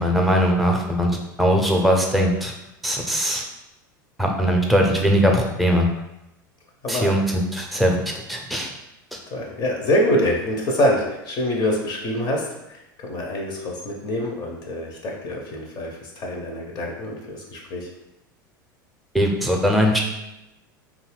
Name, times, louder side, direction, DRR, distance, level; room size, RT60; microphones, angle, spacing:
voice 1, 0.0-2.5 2.8-3.4 4.2-5.9 6.9-8.7 9.1-9.2 19.1-20.0, equal, ahead, 1 dB, 0.6 m, -20 dB
voice 2, 6.8-7.2 9.3-17.9, left 1 dB, 40° left, 1 dB, 0.7 m, -25 dB
2.6 x 2.4 x 3.2 m, 0.90 s
hypercardioid pair, 85°, 11 cm